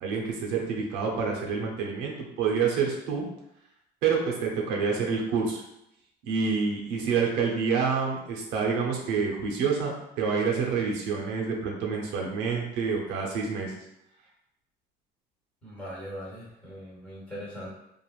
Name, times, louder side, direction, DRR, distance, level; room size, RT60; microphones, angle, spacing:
voice 1, 0.0-3.2 4.0-5.6 6.2-13.7, right 5 dB, 85° right, -1 dB, 0.7 m, -28 dB
voice 2, 15.6-17.7, equal, 5° left, -7 dB, 1.0 m, -40 dB
3.0 x 2.5 x 2.4 m, 0.83 s
cardioid pair, 150°, 18 cm